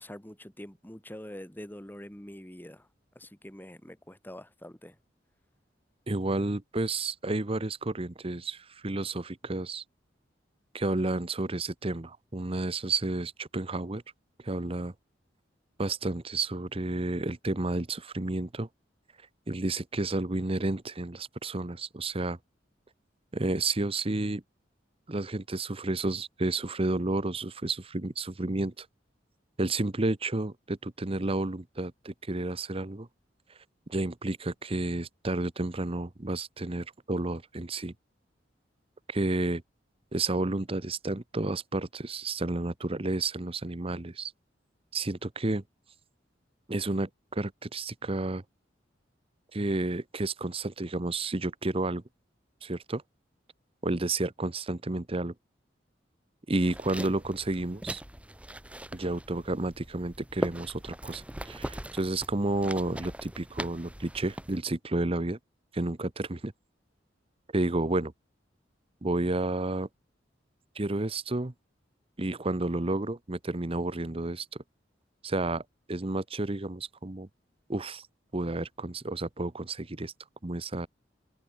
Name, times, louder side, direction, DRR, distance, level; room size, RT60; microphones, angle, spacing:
voice 1, 0.0-2.9 3.1-5.0, left 1 dB, 10° left, 2.5 m, -45 dB
voice 2, 6.1-9.8 10.7-14.0 14.4-14.9 15.8-18.7 19.5-22.4 23.3-24.4 25.1-28.9 29.6-33.1 33.9-37.9 39.1-39.6 40.1-44.3 44.9-45.6 46.7-48.4 49.5-52.0 52.6-53.0 53.8-55.3 56.5-58.0 58.9-65.4 65.7-66.5 67.5-68.1 69.0-69.9 70.7-71.5 72.2-74.5 75.2-75.6 75.9-77.3 77.7-78.1 78.3-80.1 80.4-80.9, right 2 dB, 30° right, 1.0 m, -31 dB
sound 1, 56.6-64.6, right 1 dB, 5° right, 1.6 m, -40 dB
head